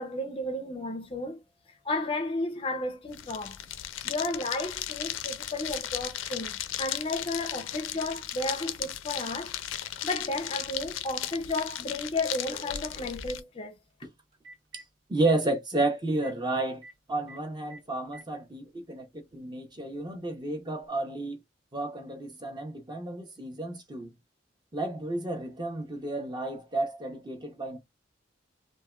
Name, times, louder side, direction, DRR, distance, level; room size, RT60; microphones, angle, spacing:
voice 1, 0.0-1.4 1.8-3.6 4.0-9.6 10.0-13.8, left 2 dB, 30° left, 0.4 m, -33 dB
sound 1, 3.1-13.4, left 11 dB, 90° left, 0.4 m, -36 dB
Telephone, 11.6-11.7 13.9-14.0 14.3-14.8 15.2-15.4 15.8-15.9 16.1-16.3 16.8-16.9 17.3-17.4 17.7-18.3 19.3-19.4 20.8-20.9, right 2 dB, 90° right, 1.0 m, -48 dB
voice 2, 15.1-16.8 17.1-21.4 21.7-24.1 24.7-27.8, right 2 dB, 25° right, 0.6 m, -31 dB
3.3 x 2.1 x 2.2 m
head